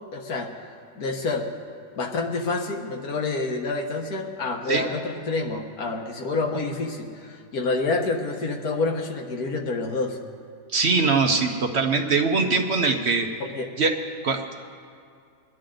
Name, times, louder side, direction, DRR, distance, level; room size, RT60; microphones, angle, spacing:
voice 1, 0.1-0.5 1.0-1.5 1.9-10.2 13.5-13.7, left 3 dB, 75° left, 3 dB, 1.7 m, -28 dB
voice 2, 10.7-13.3 13.8-13.9 14.2-14.5, right 4 dB, 50° right, 4 dB, 0.9 m, -22 dB
23.0 x 10.5 x 3.8 m, 2.3 s
omnidirectional pair, 1.6 m